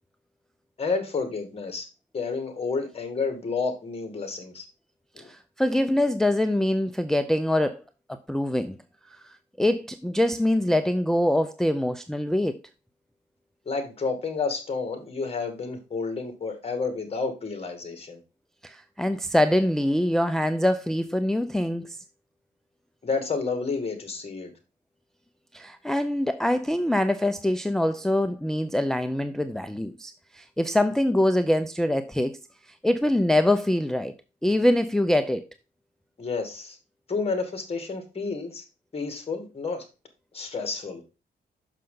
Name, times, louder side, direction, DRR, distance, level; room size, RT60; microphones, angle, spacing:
voice 1, 0.8-1.9 2.1-4.6 13.7-18.2 23.0-24.5 36.2-36.8 37.1-38.6 38.9-39.8 40.3-41.0, left 4 dB, 35° left, 2.2 m, -30 dB
voice 2, 5.2-7.8 8.1-8.8 9.2-12.6 18.6-22.0 25.5-32.4 32.8-34.1 34.4-35.5, left 1 dB, 5° left, 0.4 m, -24 dB
6.4 x 5.7 x 3.9 m
cardioid pair, 95°, 18 cm